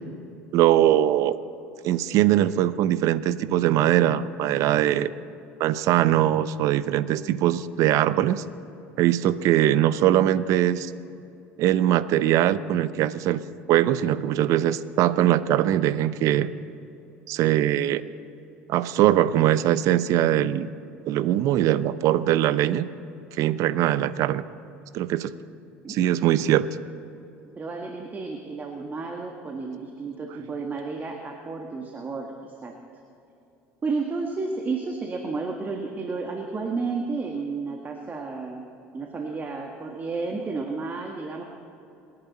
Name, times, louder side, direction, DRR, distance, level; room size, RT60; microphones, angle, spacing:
voice 1, 0.5-1.4 1.8-5.1 5.6-8.4 9.0-10.9 11.6-13.4 13.7-16.5 17.3-18.0 18.7-20.7 21.1-22.9 23.4-24.4 24.9-25.3 25.9-26.7, right 12 dB, 60° right, 15 dB, 0.7 m, -21 dB
voice 2, 27.6-32.7 33.8-38.7 38.9-41.4, right 4 dB, 30° right, 2 dB, 1.8 m, -32 dB
27.5 x 11.0 x 4.3 m, 2.8 s
hypercardioid pair, 75°, 6 cm